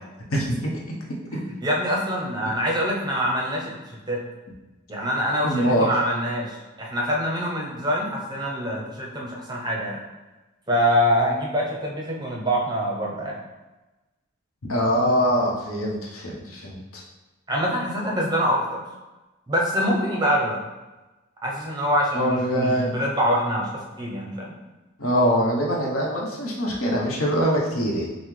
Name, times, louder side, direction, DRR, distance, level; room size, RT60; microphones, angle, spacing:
voice 1, 0.3-0.7 1.3-1.4 5.4-5.9 14.7-17.0 22.1-22.9 25.0-28.1, equal, 80° left, -2 dB, 0.8 m, -23 dB
voice 2, 1.3-4.2 4.9-10.0 10.7-13.4 17.5-18.8 19.5-20.6 21.4-24.6, equal, 20° right, -2 dB, 0.5 m, -25 dB
5.5 x 2.0 x 3.1 m, 1.1 s
head